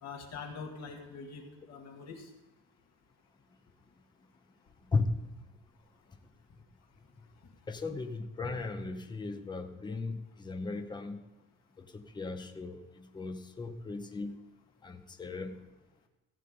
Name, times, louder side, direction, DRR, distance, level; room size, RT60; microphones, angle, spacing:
voice 1, 0.0-2.3, left 5 dB, 50° left, 1 dB, 2.1 m, -44 dB
voice 2, 7.7-11.2 11.8-14.4 14.8-15.6, left 3 dB, 10° left, 6 dB, 0.8 m, -36 dB
16.0 x 8.3 x 5.2 m, 1.1 s
cardioid pair, 180°, 35 cm